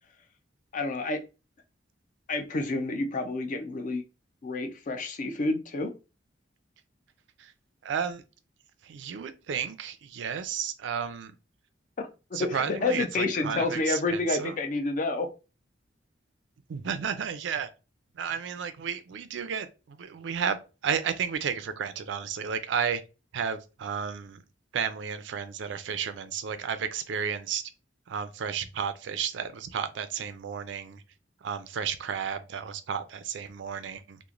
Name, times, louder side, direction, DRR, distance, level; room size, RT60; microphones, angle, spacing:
voice 1, 0.7-1.2 2.3-4.0 4.4-5.9 12.0-15.3, left 3 dB, 45° left, 0.4 m, -29 dB
voice 2, 7.8-8.2 8.8-11.4 12.3-14.6 16.7-17.7 18.2-23.0 23.3-24.4 24.7-27.6 28.1-31.0 31.4-34.2, right 7 dB, 75° right, 0.4 m, -32 dB
3.0 x 2.1 x 2.4 m
head